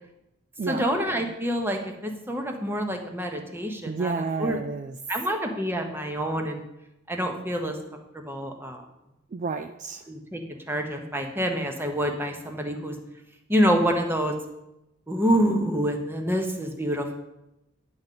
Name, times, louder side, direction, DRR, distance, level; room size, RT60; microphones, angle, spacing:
voice 1, 0.7-4.6 5.1-6.6 7.1-7.8 8.1-8.8 10.1-10.4 10.7-12.9 13.5-14.3 15.1-17.1, equal, 10° right, 3 dB, 1.1 m, -27 dB
voice 2, 3.8-4.9 9.3-10.0, right 4 dB, 35° right, 7 dB, 0.3 m, -30 dB
10.5 x 3.9 x 7.5 m, 0.89 s
head